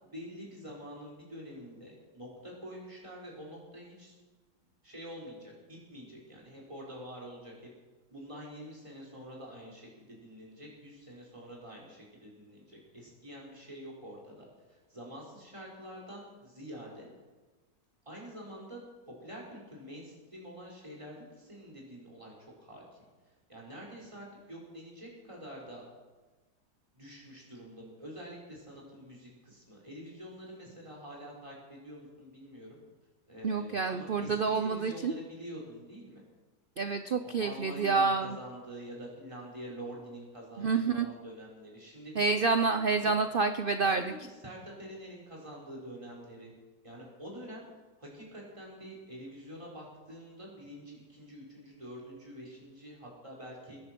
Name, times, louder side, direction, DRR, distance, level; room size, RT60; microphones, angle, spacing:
voice 1, 0.0-4.1 4.8-7.7 8.1-17.1 18.0-22.8 23.5-25.8 26.9-32.8 33.3-36.2 37.2-42.1 43.0-43.1 43.9-46.5 46.8-47.6 48.0-53.8, equal, 15° right, -4 dB, 4.7 m, -46 dB
voice 2, 33.4-35.1 36.8-38.4 40.6-41.1 42.2-44.1, right 4 dB, 55° right, 8 dB, 0.6 m, -28 dB
22.5 x 10.5 x 6.0 m, 1.3 s
omnidirectional pair, 1.9 m